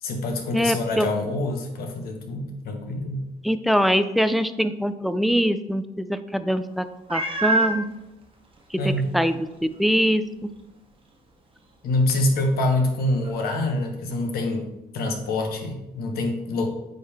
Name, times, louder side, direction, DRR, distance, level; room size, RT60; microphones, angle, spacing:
voice 1, 0.0-3.2 8.8-9.1 11.8-14.6 14.9-16.7, left 2 dB, 65° left, 3 dB, 1.4 m, -25 dB
voice 2, 0.5-1.1 3.4-7.9 8.7-9.5 9.8-10.5, equal, ahead, 11 dB, 0.3 m, -23 dB
Meow, 7.1-7.8 8.6-8.7 9.2-9.3 13.2-13.3, right 2 dB, 30° right, 1.3 m, -24 dB
9.4 x 3.7 x 3.5 m, 0.93 s
cardioid pair, 110°, 17 cm